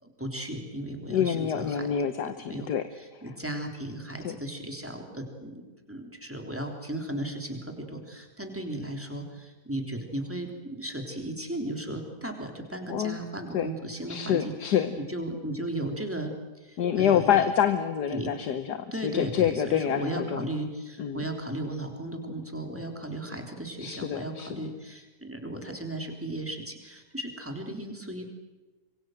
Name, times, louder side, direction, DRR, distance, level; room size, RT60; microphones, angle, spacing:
voice 1, 0.0-1.9 2.2-2.7 3.0-17.3 18.1-18.3 18.9-28.3, right 1 dB, 5° right, 3 dB, 3.4 m, -36 dB
voice 2, 1.1-2.8 3.1-3.2 4.2-4.3 12.9-13.2 13.5-13.7 14.1-15.0 16.8-20.4 21.0-21.2 23.8-24.5, left 9 dB, 70° left, 9 dB, 1.6 m, -27 dB
26.0 x 23.0 x 7.9 m, 1.2 s
omnidirectional pair, 1.8 m